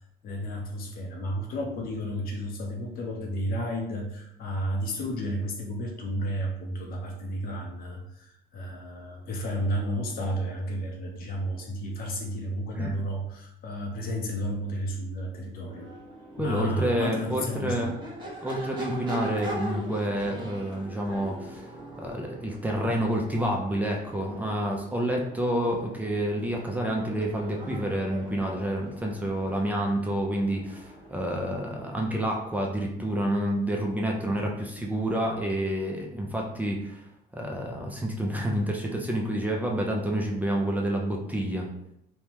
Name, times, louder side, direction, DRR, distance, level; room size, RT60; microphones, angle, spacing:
voice 1, 0.2-15.9 16.4-17.9, equal, 60° left, 1 dB, 0.7 m, -32 dB
Crowd / Race car auto racing / Accelerating revving vroom, 15.6-32.7, right 1 dB, 25° right, 1.0 m, -42 dB
voice 2, 16.4-17.9 18.4-21.7 22.0-37.0 37.3-41.7, right 1 dB, 10° right, -1 dB, 0.4 m, -28 dB
3.3 x 2.1 x 2.9 m, 0.76 s
cardioid pair, 110°, 17 cm